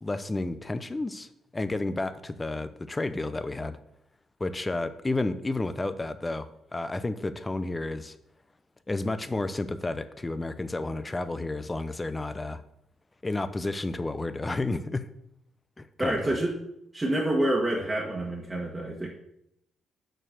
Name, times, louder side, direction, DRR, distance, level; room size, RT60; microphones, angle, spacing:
voice 1, 0.0-3.8 4.4-8.1 8.9-12.6 13.2-15.1 15.8-16.4, left 2 dB, 20° left, 12 dB, 0.6 m, -31 dB
voice 2, 16.0-16.5 16.9-19.1, right 1 dB, 20° right, -3 dB, 1.5 m, -27 dB
6.3 x 4.6 x 6.6 m, 0.77 s
cardioid pair, 90°, 0 cm